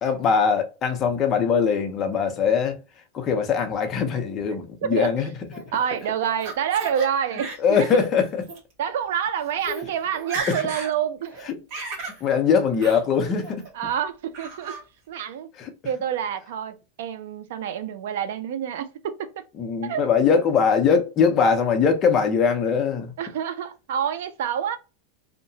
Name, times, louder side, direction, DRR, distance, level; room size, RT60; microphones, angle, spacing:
voice 1, 0.0-2.8 3.1-5.3 7.6-8.4 10.5-10.6 12.2-13.6 15.6-15.7 19.6-23.1, left 6 dB, 30° left, 0.6 m, -21 dB
Laughter, 5.5-7.1 7.4-8.0 8.4-8.6 9.3-9.4 9.6-9.8 10.1-10.9 11.3-12.2 12.8-13.0 13.4-13.9 14.3-14.8, right 3 dB, 45° right, 1.2 m, -35 dB
voice 2, 5.7-7.9 8.8-11.4 13.7-14.8 15.1-15.5 15.8-19.4 19.8-20.0 23.2-24.8, right 8 dB, 75° right, 0.4 m, -27 dB
2.8 x 2.1 x 2.6 m
supercardioid pair, 150°, 0 cm